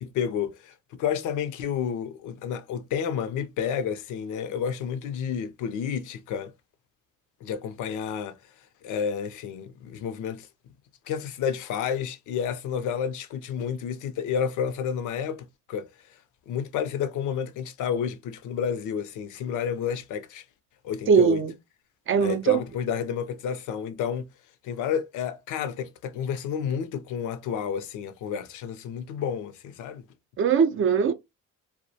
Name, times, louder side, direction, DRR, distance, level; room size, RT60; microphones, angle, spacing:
voice 1, 0.0-6.5 7.4-8.4 8.8-10.5 11.1-16.2 16.5-20.4 20.8-21.4 22.2-24.3 24.6-30.0, left 7 dB, 80° left, 0.5 m, -30 dB
voice 2, 21.1-21.5 22.1-22.6 30.4-31.1, right 6 dB, 45° right, 0.4 m, -20 dB
2.3 x 2.0 x 2.6 m
cardioid pair, 90°, 30 cm